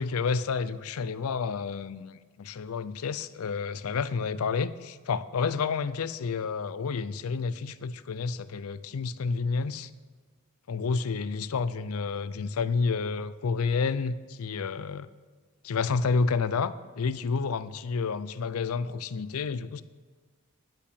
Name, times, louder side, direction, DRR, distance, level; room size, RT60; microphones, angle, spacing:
voice 1, 0.0-9.9 10.7-15.1 15.6-19.8, left 5 dB, 75° left, 0.4 m, -30 dB
10.5 x 5.6 x 8.2 m
head